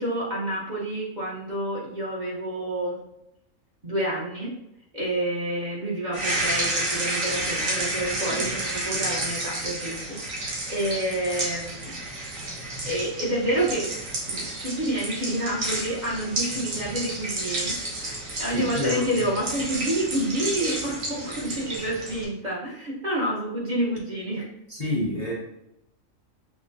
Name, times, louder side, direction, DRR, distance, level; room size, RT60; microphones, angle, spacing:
voice 1, 0.0-3.0 3.8-4.6 4.9-12.0 12.9-13.9 14.3-17.7 18.0-24.5, right 1 dB, 40° right, -6 dB, 0.8 m, -29 dB
sound 1, 6.1-22.2, right 1 dB, 80° right, 1.4 m, -31 dB
voice 2, 18.5-19.2 24.7-25.3, left 1 dB, 35° left, -4 dB, 0.8 m, -29 dB
6.0 x 2.1 x 2.5 m, 0.83 s
omnidirectional pair, 1.4 m